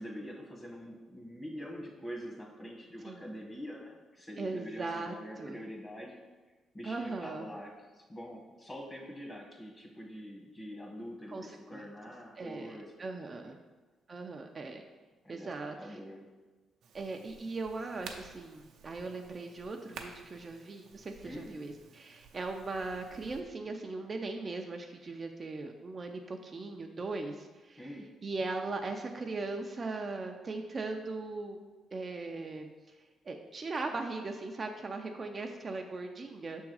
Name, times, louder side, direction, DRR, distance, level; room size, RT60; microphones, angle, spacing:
voice 1, 0.0-6.2 6.7-12.9 13.4-13.5 15.2-15.5 15.8-16.2 21.2-21.5 27.8-28.1, equal, 30° left, -1 dB, 1.6 m, -45 dB
voice 2, 4.4-5.6 6.8-7.5 11.3-11.9 12.4-13.6 14.1-14.8 15.3-16.0 16.9-27.9 28.2-31.6 31.9-36.7, right 3 dB, 35° right, 3 dB, 0.5 m, -39 dB
sound 1, 16.8-23.4, right 5 dB, 75° right, 0.6 m, -52 dB
6.2 x 3.6 x 4.8 m, 1.3 s
cardioid pair, 90°, 0 cm